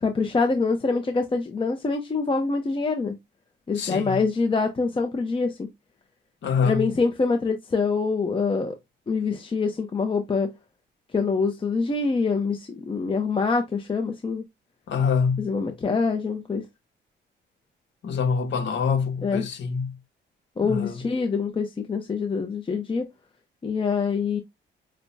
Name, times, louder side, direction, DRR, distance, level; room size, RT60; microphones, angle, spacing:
voice 1, 0.0-3.2 3.7-5.7 6.6-8.8 9.1-10.5 11.1-14.4 15.4-16.6 19.2-19.5 20.6-23.1 23.6-24.4, left 4 dB, 25° left, 0.8 m, -25 dB
voice 2, 3.7-4.2 6.4-6.9 14.9-15.5 18.0-19.9 20.6-21.0, left 6 dB, 65° left, 1.3 m, -25 dB
6.5 x 2.2 x 2.7 m
cardioid pair, 90°, 20 cm